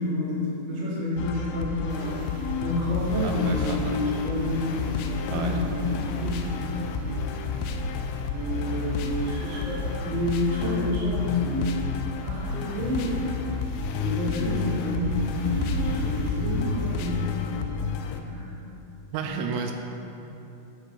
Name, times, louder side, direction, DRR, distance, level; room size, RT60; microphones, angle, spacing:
voice 1, 0.0-7.5 7.8-8.0 8.3-11.7 12.2-13.2 14.0-17.9 18.3-18.6, left 1 dB, 50° right, -8 dB, 2.0 m, -29 dB
sound 1, 1.2-18.2, left 6 dB, 90° left, 2.6 m, -31 dB
sound 2, 1.9-16.9, right 1 dB, 70° right, 2.1 m, -39 dB
voice 2, 3.2-4.0 5.3-5.6 19.1-19.7, right 5 dB, 85° right, 4 dB, 3.3 m, -32 dB
11.0 x 4.7 x 4.9 m, 2.9 s
omnidirectional pair, 5.8 m